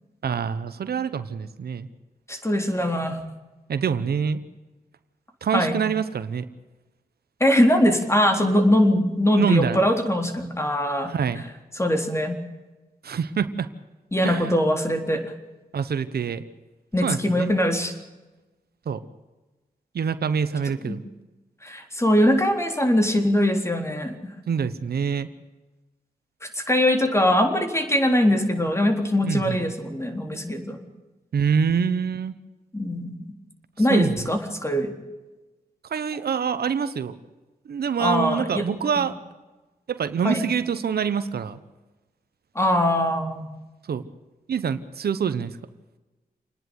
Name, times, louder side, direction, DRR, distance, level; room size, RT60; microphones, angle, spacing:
voice 1, 0.2-1.9 3.7-4.4 5.4-6.5 9.3-9.8 11.1-11.4 13.0-13.7 14.2-14.6 15.7-16.4 17.0-17.5 18.9-19.0 19.9-21.0 24.5-25.3 29.2-29.6 31.3-32.3 33.9-34.2 35.8-37.2 37.6-39.2 39.9-41.6 43.9-44.0 44.5-45.6, right 7 dB, 85° right, 13 dB, 1.0 m, -25 dB
voice 2, 2.3-3.2 5.5-5.8 7.4-11.1 11.8-12.4 14.1-15.2 16.9-17.9 20.9-21.0 21.6-24.1 26.5-30.8 32.7-33.2 33.8-34.9 38.0-38.6 39.0-39.1 40.2-40.4 42.6-43.5, left 1 dB, 15° left, 4 dB, 3.8 m, -22 dB
27.5 x 10.5 x 9.5 m, 1.1 s
cardioid pair, 55°, 16 cm